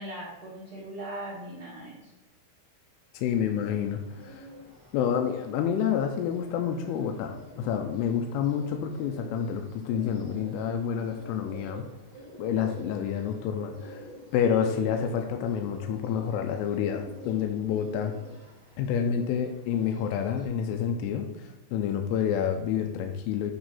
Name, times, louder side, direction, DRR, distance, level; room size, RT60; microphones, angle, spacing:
voice 1, 0.0-2.1, right 1 dB, 75° right, -7 dB, 1.5 m, -39 dB
voice 2, 3.1-4.5 4.9-11.9 12.4-14.0 14.3-18.2 18.8-23.5, left 8 dB, 85° left, 4 dB, 3.1 m, -28 dB
Bird, 3.2-20.4, equal, 20° right, 1.0 m, -48 dB
8.8 x 3.1 x 5.4 m, 0.99 s
omnidirectional pair, 5.6 m